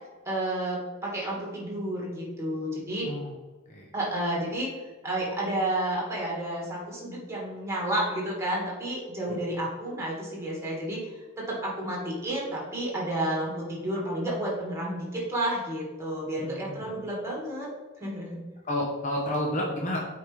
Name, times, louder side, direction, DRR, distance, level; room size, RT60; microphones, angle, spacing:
voice 1, 0.3-3.1 3.9-4.7 5.0-17.7 18.0-18.4, right 1 dB, 15° right, -4 dB, 2.2 m, -31 dB
voice 2, 16.4-16.9 18.6-20.0, left 1 dB, 35° left, -2 dB, 1.0 m, -30 dB
8.3 x 4.8 x 3.5 m, 1.2 s
head